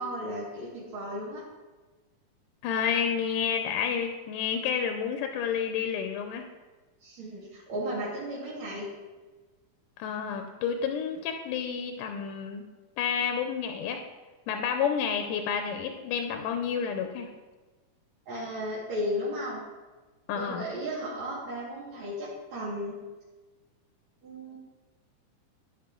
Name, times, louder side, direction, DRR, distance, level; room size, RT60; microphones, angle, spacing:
voice 1, 0.0-1.4 7.0-8.9 18.3-19.6 20.4-23.0 24.2-24.6, equal, 60° right, -9 dB, 3.4 m, -34 dB
voice 2, 2.6-6.4 10.0-12.6 13.0-14.0 14.5-17.3 20.3-20.7, left 7 dB, 90° left, 5 dB, 2.3 m, -30 dB
14.0 x 5.4 x 3.8 m, 1.3 s
omnidirectional pair, 3.7 m